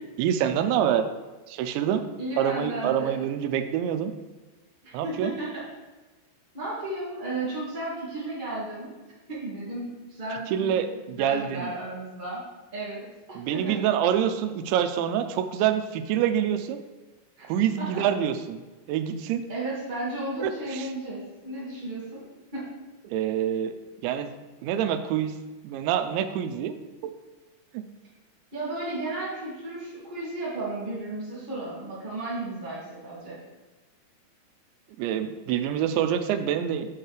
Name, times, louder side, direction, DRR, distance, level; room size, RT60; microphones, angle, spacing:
voice 1, 0.2-1.1 1.5-2.0 2.4-4.1 4.9-5.3 10.5-11.7 13.4-16.8 17.4-18.6 18.9-19.4 20.4-20.9 23.1-23.7 24.0-24.3 24.6-25.4 25.6-26.7 27.0-27.1 27.7-27.8 35.0-36.9, right 9 dB, 85° right, 8 dB, 2.9 m, -26 dB
voice 2, 2.2-3.1 4.8-5.6 6.5-8.9 9.3-12.4 12.7-13.0 13.3-13.8 17.4-17.5 17.8-18.0 19.5-22.2 22.5-22.6 28.5-33.4, right 2 dB, 30° right, -8 dB, 0.8 m, -34 dB
8.0 x 4.6 x 4.9 m, 1.2 s
omnidirectional pair, 5.1 m